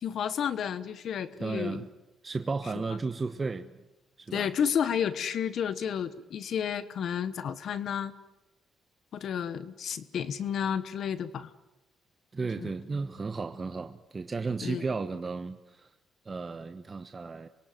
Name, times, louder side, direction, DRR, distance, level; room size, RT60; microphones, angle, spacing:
voice 1, 0.0-1.9 4.3-8.1 9.1-11.5 12.6-12.7 14.6-14.8, left 8 dB, 65° left, 1.3 m, -31 dB
voice 2, 1.4-1.9 2.2-3.7 4.2-4.5 12.3-15.9 16.2-17.5, right 4 dB, 30° right, 1.2 m, -34 dB
26.5 x 23.5 x 9.3 m
cardioid pair, 90°, 0 cm